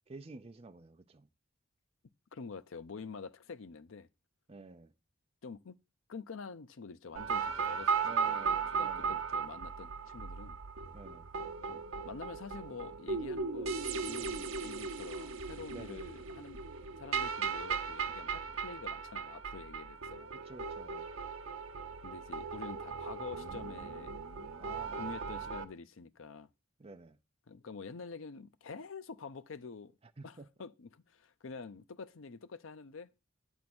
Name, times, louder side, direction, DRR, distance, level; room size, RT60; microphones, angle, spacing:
voice 1, 0.1-1.3 4.5-4.9 8.0-9.2 10.9-11.3 15.7-16.1 20.4-21.1 24.6-25.4 26.8-27.2 30.2-30.5, right 3 dB, 30° right, 0.5 m, -51 dB
voice 2, 2.3-4.1 5.4-5.7 6.1-10.6 11.7-16.7 17.0-20.3 22.0-24.2 25.0-26.5 27.5-29.9 30.2-33.1, left 4 dB, 70° left, 0.6 m, -47 dB
sound 1, 7.2-25.6, right 5 dB, 75° right, 0.8 m, -37 dB
8.6 x 3.5 x 6.1 m
head